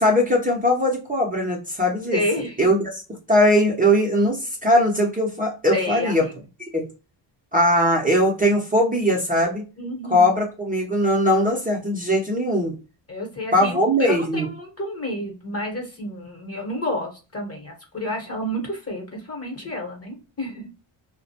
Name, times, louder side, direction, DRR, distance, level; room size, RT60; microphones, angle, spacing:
voice 1, 0.0-2.2 2.6-2.8 3.3-6.2 6.7-6.8 7.5-9.6 10.1-12.8 13.5-14.5, equal, 15° right, -2 dB, 0.7 m, -20 dB
voice 2, 2.1-2.7 5.7-6.3 9.8-10.3 13.1-20.9, left 1 dB, 30° left, 2 dB, 1.0 m, -30 dB
2.3 x 2.2 x 2.7 m, 0.32 s
cardioid pair, 75°, 50 cm